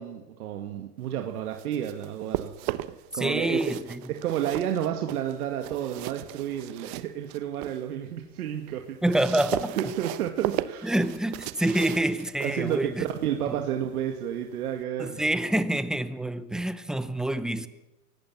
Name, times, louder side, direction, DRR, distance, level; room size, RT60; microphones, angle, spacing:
voice 1, 0.0-2.5 2.8-3.6 4.1-9.0 9.8-10.9 12.4-15.3, right 10 dB, 70° right, 2.2 m, -31 dB
sound 1, 1.3-3.1 3.5-7.8 8.2-14.8, right 16 dB, 40° right, 1.1 m, -37 dB
voice 2, 3.1-4.0 9.0-9.8 10.8-13.0 13.5-13.6 15.0-17.7, right 1 dB, ahead, 0.8 m, -27 dB
22.5 x 18.5 x 7.5 m
hypercardioid pair, 135°, 46 cm